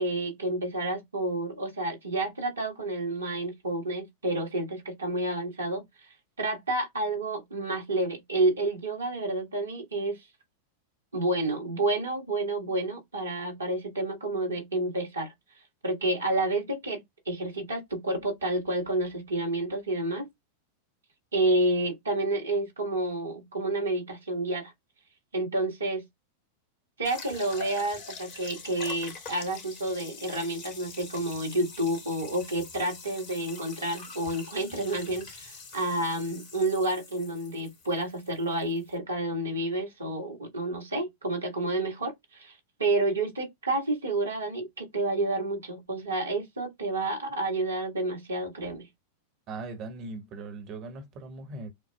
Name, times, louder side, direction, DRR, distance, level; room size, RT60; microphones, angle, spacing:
voice 1, 0.0-5.8 6.4-10.2 11.1-15.3 15.8-20.3 21.3-24.7 25.3-26.0 27.0-48.9, right 2 dB, 75° right, 1.8 m, -29 dB
sound 1, 27.0-39.0, left 4 dB, 40° left, 2.2 m, -45 dB
voice 2, 49.5-51.7, right 3 dB, 35° right, 1.4 m, -39 dB
6.9 x 2.4 x 2.3 m
figure-of-eight pair, 90°, 0 cm